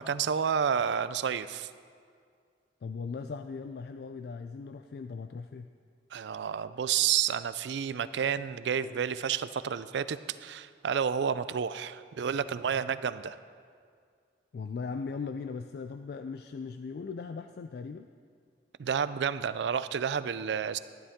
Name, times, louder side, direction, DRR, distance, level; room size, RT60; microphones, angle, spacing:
voice 1, 0.0-1.7 6.1-13.4 18.8-20.8, right 7 dB, 80° right, 15 dB, 0.4 m, -30 dB
voice 2, 2.8-5.7 14.5-18.1, left 5 dB, 60° left, 8 dB, 0.3 m, -38 dB
12.5 x 11.5 x 3.6 m, 2.1 s
head